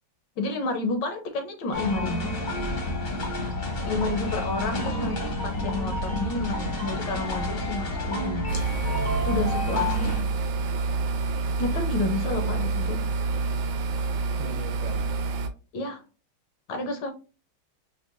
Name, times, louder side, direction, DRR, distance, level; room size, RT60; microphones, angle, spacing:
voice 1, 0.4-2.3 3.8-8.6 9.2-10.3 11.6-13.0 15.7-16.0 16.7-17.1, left 2 dB, 70° left, 1.1 m, -30 dB
sound 1, 1.7-10.2, left 1 dB, 45° left, 0.6 m, -30 dB
voice 2, 4.7-5.2 12.2-12.9 14.4-15.1, right 4 dB, 50° right, 1.2 m, -39 dB
sound 2, 8.5-15.5, right 3 dB, 75° right, 1.2 m, -27 dB
5.3 x 2.1 x 2.4 m
omnidirectional pair, 2.2 m